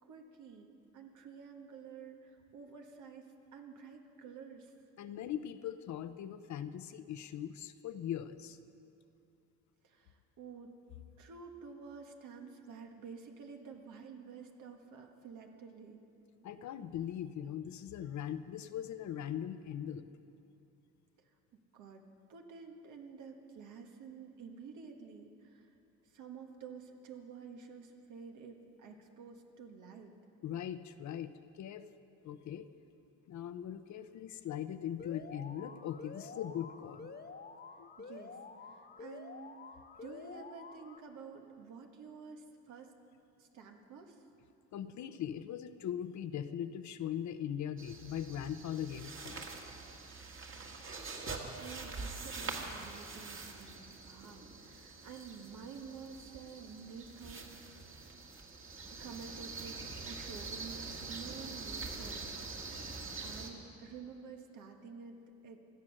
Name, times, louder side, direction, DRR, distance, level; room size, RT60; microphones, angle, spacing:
voice 1, 0.0-3.3 3.5-4.7 9.8-10.7 11.2-16.0 21.2-21.3 21.7-22.0 22.3-25.7 26.0-30.1 38.0-39.6 40.0-42.9 43.4-44.2 51.6-57.8 59.0-62.3 62.6-65.2 65.4-65.6, right 5 dB, 80° right, 3 dB, 1.6 m, -50 dB
voice 2, 5.0-8.6 16.4-20.1 30.4-31.9 32.2-32.7 33.3-37.1 37.8-37.9 44.7-49.5, left 10 dB, 70° left, 12 dB, 0.8 m, -40 dB
Alarm, 35.0-41.0, left 4 dB, 35° left, 1.0 m, -49 dB
sound 1, 47.8-63.5, right 3 dB, 45° right, 1.9 m, -45 dB
17.0 x 12.0 x 6.5 m, 2.7 s
cardioid pair, 90°, 30 cm